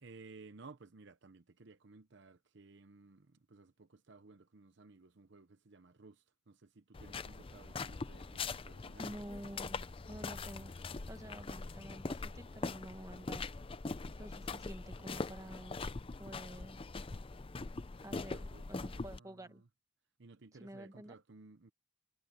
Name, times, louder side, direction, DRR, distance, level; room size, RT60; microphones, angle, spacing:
voice 1, 0.0-9.1 18.1-19.7 20.2-21.7, right 3 dB, 60° right, 0.8 m, -57 dB
sound 1, 6.9-19.2, left 3 dB, 25° left, 0.5 m, -42 dB
voice 2, 9.0-9.8 10.1-10.7 11.1-13.5 14.2-15.8 16.2-16.8 18.0-19.6 20.6-21.2, right 1 dB, 15° right, 1.5 m, -49 dB
head